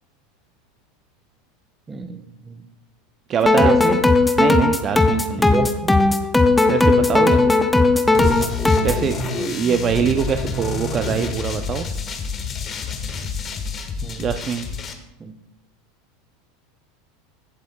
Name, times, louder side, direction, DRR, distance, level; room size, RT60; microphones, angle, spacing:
voice 1, 1.9-2.6 3.6-4.0 5.4-5.9 7.1-7.4 14.0-14.2 15.2-15.3, right 3 dB, 20° right, 7 dB, 1.0 m, -28 dB
voice 2, 3.3-4.0 4.4-5.5 6.7-7.4 8.8-11.9 14.2-14.7, right 8 dB, 35° right, 8 dB, 0.5 m, -23 dB
sound 1, 3.4-9.0, left 2 dB, 10° left, 0.7 m, -17 dB
sound 2, 8.1-14.9, left 4 dB, 35° left, 1.3 m, -28 dB
15.5 x 7.7 x 2.3 m, 0.89 s
hypercardioid pair, 90°, 0 cm